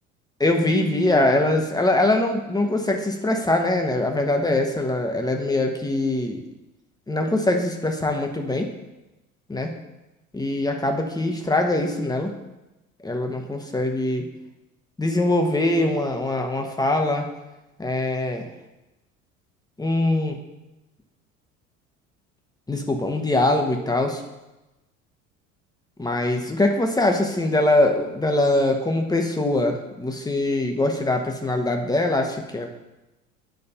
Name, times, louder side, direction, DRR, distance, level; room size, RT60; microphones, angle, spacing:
voice 1, 0.4-6.4 7.1-8.7 9.5-9.7 10.3-12.3 13.0-14.2 15.0-17.3 17.8-18.5 19.8-20.4 22.7-24.2 26.0-32.7, left 2 dB, 10° left, 3 dB, 1.2 m, -22 dB
9.2 x 4.1 x 5.6 m, 1.0 s
figure-of-eight pair, 65°, 41 cm